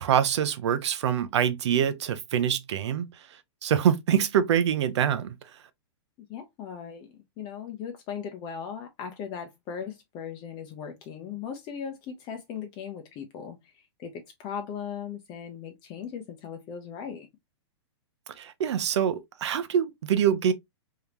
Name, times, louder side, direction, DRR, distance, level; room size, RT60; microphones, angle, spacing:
voice 1, 0.0-3.1 3.6-5.4 18.4-20.5, right 9 dB, 70° right, 0.8 m, -25 dB
voice 2, 6.3-17.3, left 7 dB, 30° left, 0.7 m, -38 dB
3.7 x 3.5 x 2.9 m
hypercardioid pair, 145°, 15 cm